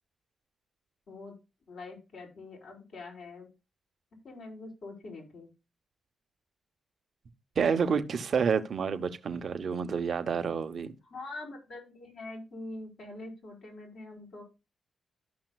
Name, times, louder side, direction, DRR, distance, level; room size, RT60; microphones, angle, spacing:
voice 1, 1.7-3.5 4.2-5.5 11.0-14.4, left 2 dB, 70° left, 4.5 m, -44 dB
voice 2, 7.6-10.9, right 6 dB, 60° right, 1.1 m, -29 dB
13.5 x 5.8 x 2.3 m
supercardioid pair, 50°, 0 cm